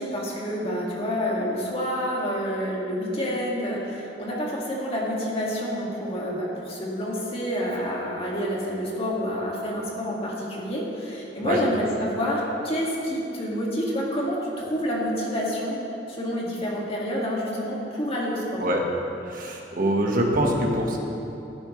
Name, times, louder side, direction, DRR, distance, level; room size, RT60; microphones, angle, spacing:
voice 1, 0.0-15.8 16.1-18.6, equal, 35° left, -4 dB, 2.1 m, -28 dB
voice 2, 19.2-21.0, right 1 dB, 50° right, 0 dB, 1.5 m, -24 dB
14.0 x 11.5 x 3.3 m, 2.9 s
head